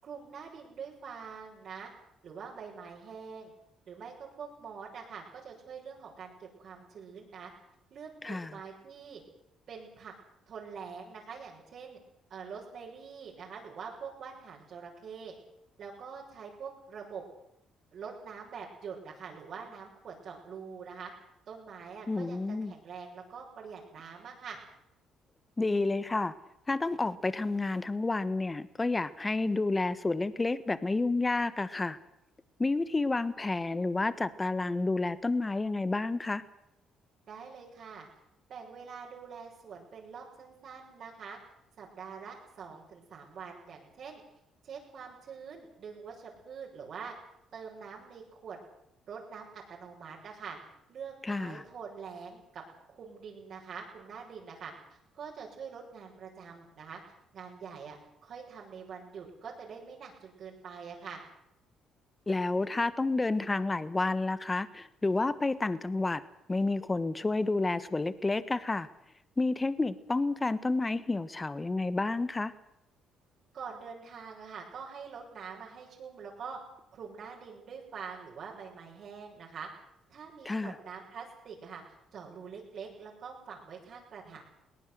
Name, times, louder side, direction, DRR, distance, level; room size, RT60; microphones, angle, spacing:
voice 1, 0.0-1.9 2.2-3.5 3.9-7.5 7.9-9.2 9.7-10.1 10.5-12.0 12.3-15.3 15.8-17.2 17.9-21.1 21.5-24.6 37.3-38.1 38.5-41.4 41.8-44.2 44.6-47.1 47.5-48.6 49.1-50.6 50.9-52.6 52.9-57.0 57.3-61.2 73.5-76.6 76.9-79.7 80.1-81.8 82.1-84.4, right 6 dB, 60° right, -4 dB, 6.6 m, -45 dB
voice 2, 22.1-22.7 25.6-26.3 26.7-32.0 32.6-36.4 51.2-51.6 62.3-66.2 66.5-68.9 69.4-72.5 80.4-80.7, left 3 dB, 20° left, 15 dB, 1.4 m, -30 dB
22.0 x 18.5 x 8.0 m, 0.79 s
cardioid pair, 95°, 0 cm